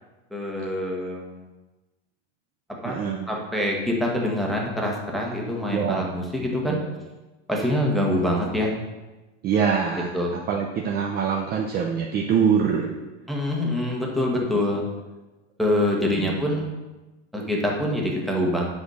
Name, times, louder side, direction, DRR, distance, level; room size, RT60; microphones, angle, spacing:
voice 1, 0.3-1.5 2.8-6.8 7.5-8.7 9.9-10.3 13.3-14.8 15.6-16.7 17.3-18.7, left 1 dB, ahead, -3 dB, 1.4 m, -25 dB
voice 2, 2.8-3.3 5.7-6.1 6.6-6.8 9.4-13.0 16.1-16.3, right 7 dB, 25° right, 1 dB, 0.7 m, -24 dB
8.3 x 5.0 x 6.3 m, 1.1 s
supercardioid pair, 145°, 35 cm